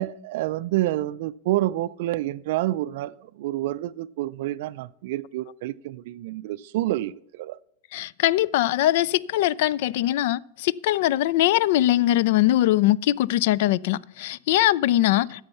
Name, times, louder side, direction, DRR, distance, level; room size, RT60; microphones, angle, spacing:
voice 1, 0.0-7.6, right 15 dB, 65° right, 0.4 m, -28 dB
voice 2, 7.9-15.4, left 14 dB, 65° left, 0.3 m, -21 dB
11.0 x 7.2 x 5.7 m
hypercardioid pair, 105°, 0 cm